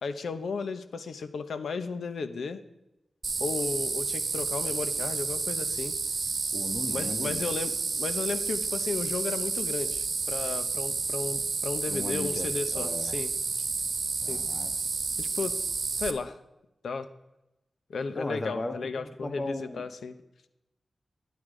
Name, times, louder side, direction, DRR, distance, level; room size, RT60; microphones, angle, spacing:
voice 1, 0.0-2.6 3.4-5.9 6.9-13.3 14.3-14.4 15.2-15.6 16.0-16.4 16.8-17.1 17.9-20.1, left 4 dB, 85° left, 11 dB, 0.9 m, -34 dB
sound 1, 3.2-16.1, right 4 dB, 55° right, 1.2 m, -31 dB
voice 2, 6.5-7.4 11.9-13.2 14.2-14.7 18.1-19.8, left 2 dB, 40° left, 7 dB, 1.5 m, -36 dB
11.5 x 11.0 x 5.0 m, 0.92 s
cardioid pair, 70°, 0 cm